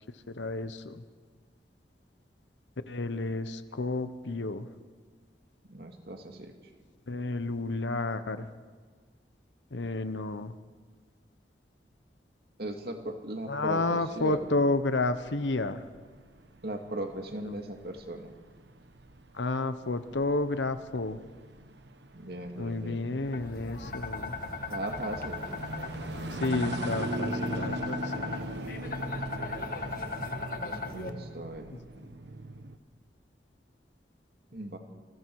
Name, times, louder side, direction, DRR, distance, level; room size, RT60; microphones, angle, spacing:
voice 1, 0.4-1.0 2.9-4.7 7.1-8.5 9.7-10.5 13.5-15.8 17.5-17.6 19.3-21.2 22.6-24.3 26.3-28.3, left 2 dB, 85° left, 11 dB, 0.9 m, -31 dB
voice 2, 5.7-6.5 12.6-14.4 16.6-18.3 22.1-23.5 24.7-25.4 30.9-31.7 34.5-34.8, right 1 dB, 60° right, 4 dB, 2.2 m, -38 dB
sound 1, 13.9-32.8, right 1 dB, 75° right, 1.1 m, -40 dB
sound 2, 23.3-31.1, left 3 dB, 50° left, 1.5 m, -37 dB
28.5 x 20.5 x 4.8 m, 1.5 s
head